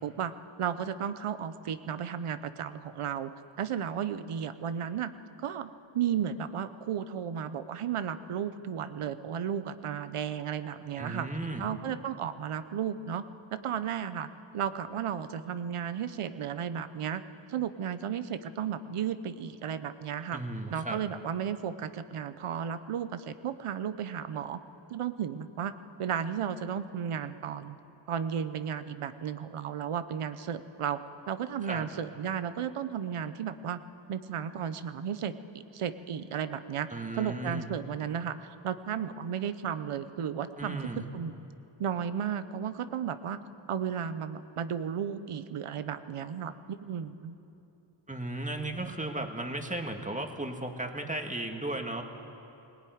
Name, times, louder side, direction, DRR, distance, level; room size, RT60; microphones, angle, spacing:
voice 1, 0.0-0.3 0.6-3.3 3.6-5.1 5.4-11.3 11.6-13.3 13.5-14.3 14.5-17.2 17.5-20.4 20.7-24.6 24.9-25.7 26.0-27.8 28.1-31.0 31.3-33.8 34.1-36.9 37.2-41.4 41.8-43.4 43.7-47.3, right 8 dB, 90° right, 12 dB, 0.9 m, -34 dB
voice 2, 11.0-11.7 20.3-21.0 31.6-31.9 36.9-37.7 40.6-41.1 48.1-52.0, right 2 dB, 15° right, 4 dB, 1.9 m, -35 dB
18.5 x 18.5 x 9.4 m, 2.9 s
wide cardioid pair, 80°, 50 cm